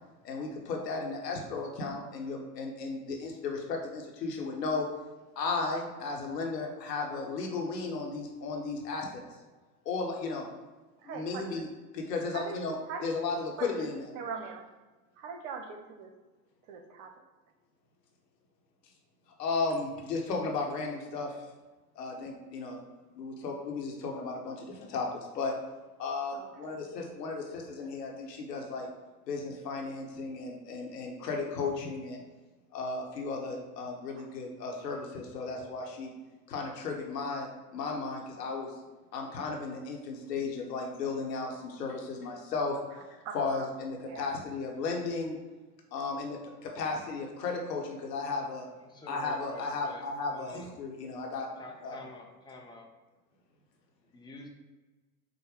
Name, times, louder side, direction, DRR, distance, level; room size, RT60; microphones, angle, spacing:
voice 1, 0.2-4.9 5.4-9.2 9.8-10.5 11.0-11.7 11.9-14.1 19.4-21.3 22.0-22.8 23.2-25.5 26.0-28.9 29.3-32.2 32.7-36.1 36.5-38.7 39.1-42.8 43.3-45.4 45.9-48.7 49.1-51.5 51.8-52.0, left 4 dB, 85° left, 1 dB, 1.0 m, -35 dB
voice 2, 11.0-11.7 12.3-12.6 12.9-13.1 13.6-13.9 14.2-14.6 15.2-16.1 16.7-17.1 26.3-26.8 34.2-34.3 43.2-43.7 44.0-44.3, right 5 dB, 55° right, 6 dB, 0.7 m, -41 dB
voice 3, 48.8-50.0 50.3-50.7 51.6-52.9 54.1-54.5, left 2 dB, 10° left, 0 dB, 0.6 m, -48 dB
5.1 x 2.1 x 4.8 m, 1.2 s
hypercardioid pair, 95°, 47 cm